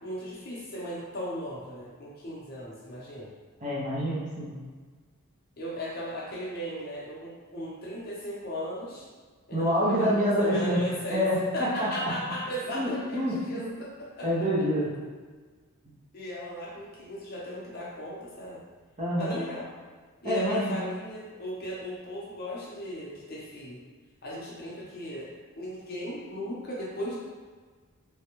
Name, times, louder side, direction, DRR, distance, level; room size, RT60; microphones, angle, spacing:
voice 1, 0.0-3.3 5.6-9.1 9.5-11.3 11.5-14.5 16.1-18.6 19.2-19.7 20.2-23.8 24.2-25.3 25.6-27.2, equal, 45° left, -5 dB, 0.6 m, -36 dB
voice 2, 3.6-4.5 9.5-10.8 11.1-11.4 11.8-11.9 12.7-13.7 14.2-14.9 19.0-19.4 20.2-20.8, equal, 35° right, -7 dB, 0.7 m, -27 dB
3.3 x 2.2 x 2.9 m, 1.5 s
head